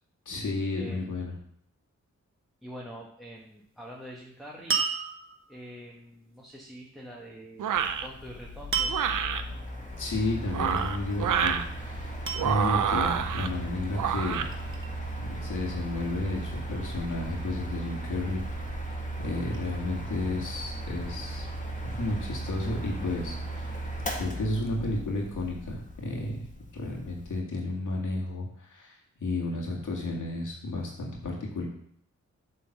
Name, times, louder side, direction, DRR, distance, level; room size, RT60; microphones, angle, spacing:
voice 1, 0.3-1.3 10.0-14.7 15.2-18.8 19.2-21.5 21.8-23.7 24.1-26.4 26.7-31.7, left 2 dB, 80° left, -1 dB, 2.0 m, -32 dB
voice 2, 0.8-1.2 2.6-4.8 5.5-8.9, equal, ahead, -3 dB, 1.4 m, -45 dB
sound 1, 4.7-5.6 8.7-9.3 10.7-11.2 12.3-13.0 14.0-14.9, right 6 dB, 45° right, 1.1 m, -32 dB
sound 2, 7.6-8.1 8.9-9.4 10.4-11.6 12.3-13.5 13.9-14.5, right 8 dB, 85° right, 0.6 m, -27 dB
Mechanical fan, 7.7-27.4, right 1 dB, 25° left, 1.8 m, -37 dB
8.3 x 3.8 x 6.0 m, 0.67 s
cardioid pair, 65°, 30 cm